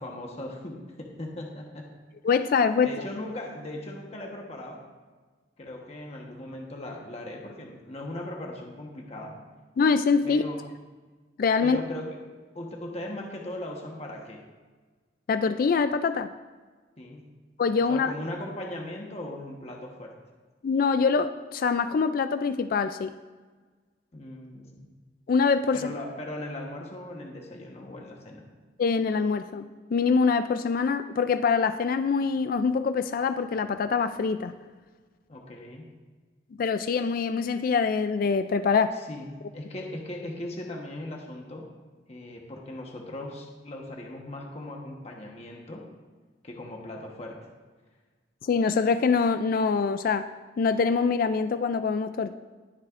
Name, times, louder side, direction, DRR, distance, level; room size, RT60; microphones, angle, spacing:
voice 1, 0.0-1.9 2.8-4.8 5.6-9.4 10.2-10.7 11.6-12.2 12.5-14.4 17.0-17.3 17.9-20.2 24.1-24.9 25.7-28.5 35.3-35.9 39.1-41.7 42.1-45.9 46.4-47.4, left 1 dB, 35° left, 0 dB, 1.2 m, -38 dB
voice 2, 2.2-2.9 9.8-10.4 11.4-11.8 15.3-16.3 17.6-18.1 20.6-23.1 25.3-25.9 28.8-34.5 36.6-39.0 48.4-50.3 50.6-52.3, left 5 dB, 50° left, 10 dB, 0.3 m, -24 dB
20.0 x 7.4 x 2.5 m, 1.4 s
head